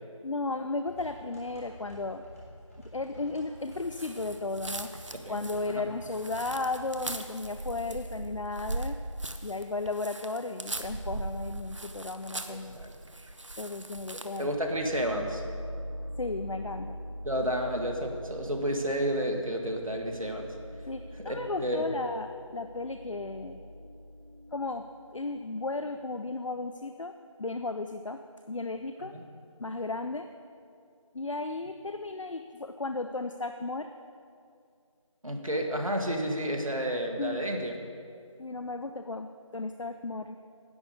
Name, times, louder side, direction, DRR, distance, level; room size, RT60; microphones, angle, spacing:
voice 1, 0.2-2.3 2.9-4.9 5.3-9.0 9.4-12.8 13.6-14.5 16.2-17.0 20.9-23.6 24.5-24.9 25.1-27.1 27.4-28.2 28.5-29.1 29.6-30.3 31.1-33.9 37.2-37.5 38.4-40.4, left 3 dB, 65° left, 8 dB, 0.4 m, -35 dB
sound 1, 0.9-6.9, equal, 25° left, 2.0 m, -49 dB
sound 2, 3.9-14.5, right 2 dB, 65° right, 0.7 m, -39 dB
voice 2, 12.5-12.9 14.4-15.4 17.2-20.5 21.2-21.9 29.1-29.2 35.2-37.8, equal, 85° right, 2 dB, 1.5 m, -31 dB
sound 3, 14.2-26.2, equal, 40° right, 2.1 m, -43 dB
10.5 x 5.1 x 8.1 m, 2.4 s
figure-of-eight pair, 170°, 17 cm